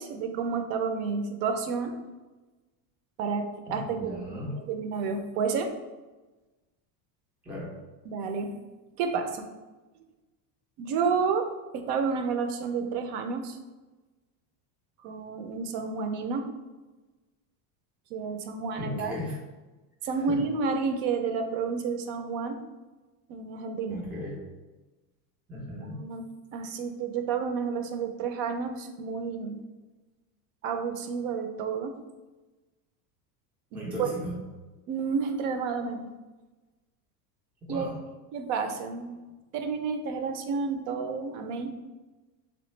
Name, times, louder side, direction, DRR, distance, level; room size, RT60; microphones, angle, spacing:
voice 1, 0.0-1.9 3.2-4.4 4.7-5.7 8.1-8.5 9.0-9.5 10.8-11.5 11.7-13.6 15.0-16.5 18.1-19.1 20.0-22.6 23.3-24.0 25.8-26.2 26.5-29.6 30.6-31.9 33.7-34.1 34.9-36.0 37.7-37.9 38.3-39.1 39.5-41.7, right 5 dB, 60° right, 6 dB, 0.5 m, -30 dB
voice 2, 3.7-4.6 7.4-7.7 18.8-19.4 20.3-20.4 23.9-24.4 25.5-26.0 33.7-34.4 37.6-38.0, left 1 dB, 5° right, -5 dB, 0.3 m, -36 dB
3.3 x 3.0 x 3.1 m, 1.2 s
cardioid pair, 150°, 46 cm